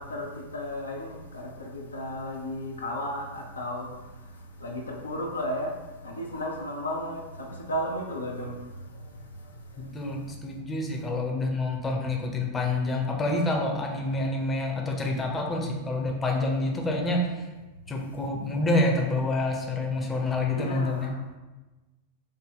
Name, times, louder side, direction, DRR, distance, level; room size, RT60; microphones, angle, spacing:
voice 1, 0.0-4.0 4.3-5.8 6.0-8.6 8.9-9.9 20.5-21.2, equal, 75° left, 1 dB, 0.5 m, -34 dB
voice 2, 9.8-17.3 17.9-21.1, left 2 dB, 20° left, 1 dB, 0.7 m, -27 dB
5.5 x 2.2 x 3.5 m, 1.2 s
figure-of-eight pair, 90°, 0 cm